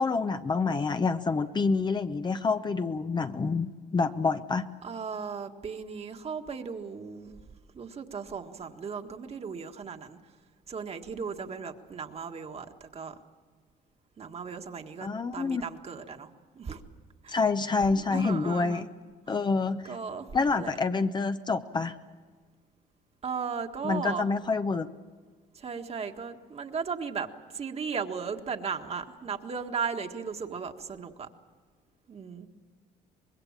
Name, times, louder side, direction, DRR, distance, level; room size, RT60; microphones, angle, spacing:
voice 1, 0.0-4.7 15.0-15.6 17.3-18.9 19.3-19.9 20.3-22.0 23.8-24.9, left 4 dB, 25° left, 9 dB, 0.8 m, -27 dB
voice 2, 4.8-7.4 7.7-10.2 10.7-13.2 14.2-16.3 16.6-16.8 17.2-17.4 17.9-18.9 19.3-19.4 19.9-20.8 23.2-24.3 25.5-31.3 32.1-32.5, right 6 dB, 35° right, 5 dB, 1.7 m, -36 dB
25.0 x 21.0 x 7.4 m, 1.5 s
cardioid pair, 110°, 17 cm